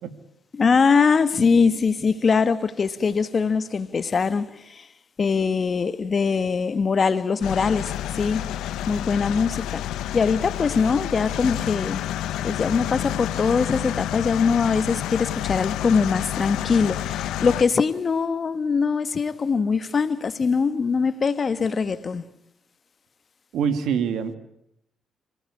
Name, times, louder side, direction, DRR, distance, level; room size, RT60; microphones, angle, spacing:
voice 1, 0.5-4.9 5.2-8.4 8.9-9.8 10.1-12.0 12.4-22.2, left 5 dB, 40° left, 1.4 m, -22 dB
sound 1, 7.4-17.6, left 12 dB, 85° left, 1.0 m, -29 dB
voice 2, 23.5-24.4, right 7 dB, 80° right, 2.2 m, -25 dB
26.5 x 17.5 x 9.8 m
cardioid pair, 90°, 0 cm